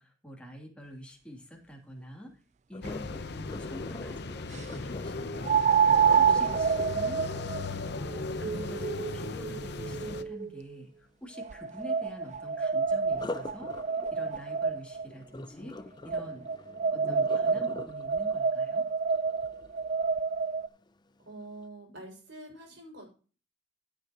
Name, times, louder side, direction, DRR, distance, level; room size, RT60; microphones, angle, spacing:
voice 1, 0.0-2.4 2.7-5.7 6.2-7.3 7.9-13.7 14.1-15.8 16.0-16.5 16.9-18.8, equal, 5° left, -1 dB, 2.9 m, -46 dB
Sink (filling or washing), 2.7-8.7 13.1-20.1 20.6-20.9 21.4-21.5, left 2 dB, 25° left, 0.5 m, -44 dB
sound 1, 2.8-10.2, left 3 dB, 60° left, 0.8 m, -37 dB
sound 2, 2.9-3.0 5.4-10.6 11.4-15.1 16.1-20.7, right 6 dB, 40° right, 0.4 m, -28 dB
voice 2, 21.2-23.1, right 1 dB, 70° right, 0 dB, 5.8 m, -46 dB
14.5 x 8.8 x 3.0 m, 0.37 s
head